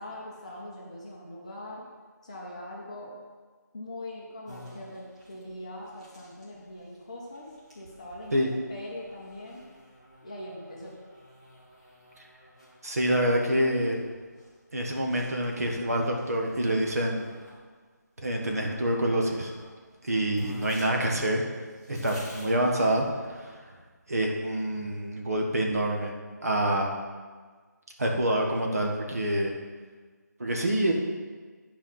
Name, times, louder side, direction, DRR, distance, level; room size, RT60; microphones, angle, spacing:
voice 1, 0.0-1.8 2.2-3.2 3.7-7.5 7.7-8.4 8.7-9.6 10.2-11.0, left 1 dB, 20° left, -4 dB, 1.2 m, -41 dB
sound 1, 4.5-17.6 18.3-19.7 20.0-20.1 20.3-23.5, left 1 dB, 20° right, 1.7 m, -51 dB
voice 2, 12.8-14.0 14.7-17.3 18.2-19.5 20.0-21.4 21.9-23.6 24.1-26.1 26.4-27.0 28.0-29.5 30.4-30.9, right 1 dB, 55° right, 0 dB, 1.5 m, -26 dB
10.5 x 4.8 x 5.8 m, 1.5 s
figure-of-eight pair, 180°, 10 cm